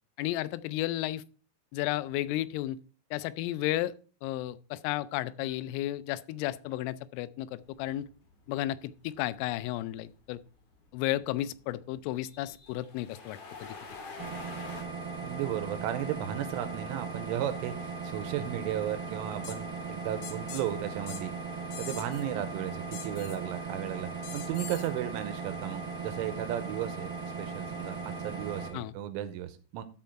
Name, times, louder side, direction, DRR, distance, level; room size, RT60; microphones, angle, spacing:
voice 1, 0.2-1.2 1.7-2.8 3.1-3.9 4.2-8.1 8.5-10.4 10.9-13.8 28.7-28.9, left 15 dB, 90° left, 3.2 m, -33 dB
sound 1, 7.6-14.8, left 4 dB, 50° left, 3.2 m, -48 dB
sound 2, 14.2-28.7, right 4 dB, 40° right, 1.2 m, -38 dB
voice 2, 15.2-21.3 21.8-24.1 24.3-27.1 27.4-29.8, right 11 dB, 85° right, 3.2 m, -35 dB
sound 3, 19.4-19.6 20.2-20.6 21.1-21.2 21.7-22.2 22.9-23.4 24.2-24.9, left 9 dB, 70° left, 2.8 m, -43 dB
13.0 x 4.6 x 4.4 m
omnidirectional pair, 5.7 m